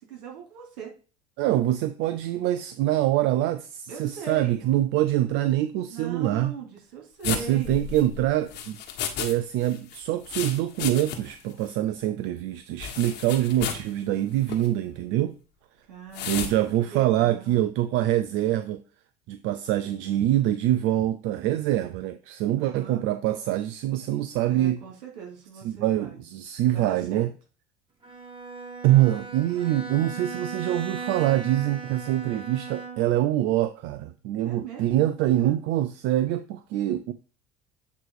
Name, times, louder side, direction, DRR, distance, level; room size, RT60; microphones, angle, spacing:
voice 1, 0.1-0.9 3.9-4.7 5.8-7.8 15.9-17.7 22.6-23.0 24.5-26.2 26.7-27.3 34.4-35.6, right 6 dB, 80° right, 1 dB, 3.1 m, -41 dB
voice 2, 1.4-6.6 7.2-8.8 9.2-15.3 16.3-18.8 19.3-24.8 25.6-27.3 28.8-37.1, right 13 dB, 65° right, 11 dB, 0.6 m, -25 dB
sound 1, 7.2-9.3 9.6-11.4 11.7-11.8 12.8-13.9 14.4-14.7 16.1-16.5, left 8 dB, 60° left, 1.4 m, -33 dB
Bowed string instrument, 28.0-33.3, right 4 dB, 25° right, 1.9 m, -38 dB
8.3 x 3.2 x 4.7 m, 0.36 s
supercardioid pair, 90°, 20 cm